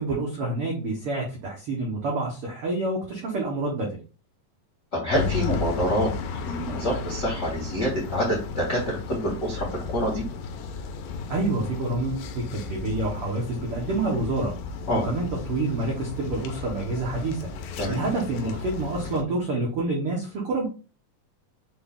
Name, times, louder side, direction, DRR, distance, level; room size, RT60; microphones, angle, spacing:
voice 1, 0.0-4.0 11.3-17.4 17.9-20.7, right 2 dB, 75° right, -2 dB, 1.3 m, -28 dB
voice 2, 4.9-6.1 6.4-10.3 14.9-15.0 17.8-18.0, equal, 50° left, -5 dB, 0.9 m, -26 dB
sound 1, 5.1-19.2, left 5 dB, 80° left, 2.2 m, -34 dB
6.2 x 2.4 x 3.6 m, 0.35 s
omnidirectional pair, 4.0 m